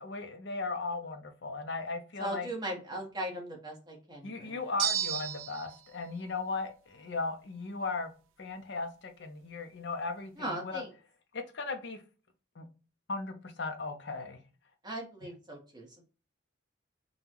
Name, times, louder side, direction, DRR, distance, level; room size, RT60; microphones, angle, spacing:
voice 1, 0.0-2.5 4.2-8.1 8.4-10.8 11.3-12.0 12.6-12.7 13.1-14.4, left 3 dB, 60° left, 0.7 m, -37 dB
voice 2, 2.2-4.6 10.4-10.9 14.8-16.0, right 1 dB, 20° right, 1.3 m, -38 dB
sound 1, 4.8-5.8, right 10 dB, 90° right, 0.5 m, -32 dB
5.3 x 2.3 x 3.0 m
head